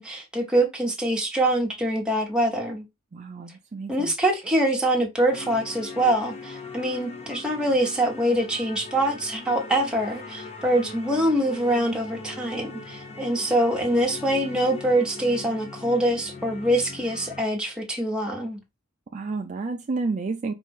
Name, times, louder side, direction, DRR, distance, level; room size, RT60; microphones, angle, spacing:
voice 1, 0.0-2.8 3.9-18.6, right 1 dB, 5° right, 1.1 m, -24 dB
voice 2, 3.1-4.1 19.1-20.5, right 3 dB, 35° right, 0.4 m, -30 dB
sound 1, 5.3-17.4, left 3 dB, 30° left, 0.7 m, -40 dB
5.2 x 2.5 x 3.5 m
head